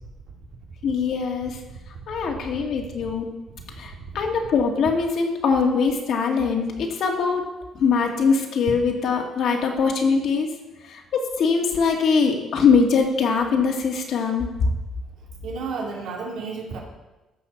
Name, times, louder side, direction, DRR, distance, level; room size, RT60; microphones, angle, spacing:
voice 1, 0.8-1.6 2.1-3.3 3.8-7.4 7.8-10.5 10.8-14.7, left 5 dB, 60° left, 2 dB, 2.1 m, -22 dB
voice 2, 15.4-16.8, right 4 dB, 75° right, -1 dB, 2.9 m, -31 dB
14.5 x 5.7 x 6.9 m, 1.1 s
cardioid pair, 150°, 0 cm